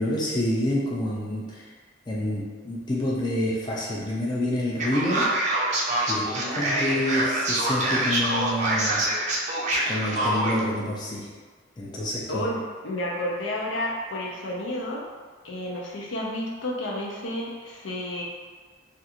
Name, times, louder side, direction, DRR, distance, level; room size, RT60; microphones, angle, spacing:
voice 1, 0.0-1.7 2.1-5.3 6.1-9.0 9.9-11.3 11.8-12.5, left 1 dB, 25° left, -5 dB, 0.4 m, -28 dB
Male speech man speaking, 4.8-10.6, right 1 dB, 40° right, 0.4 m, -25 dB
voice 2, 6.2-6.6 12.3-15.1 15.4-18.2, left 1 dB, 75° left, -2 dB, 0.5 m, -31 dB
2.5 x 2.4 x 2.8 m, 1.5 s
head